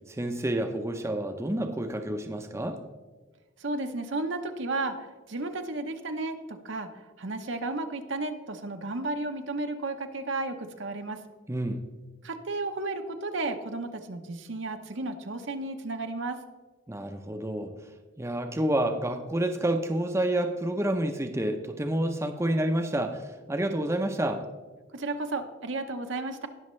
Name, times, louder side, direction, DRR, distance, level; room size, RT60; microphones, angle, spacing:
voice 1, 0.1-2.8 11.5-11.8 16.9-17.9 18.2-24.4, right 1 dB, 15° right, 5 dB, 0.6 m, -29 dB
voice 2, 3.6-11.2 12.2-16.4 24.9-26.5, right 2 dB, 70° right, 6 dB, 0.9 m, -33 dB
19.0 x 6.4 x 3.2 m, 1.3 s
head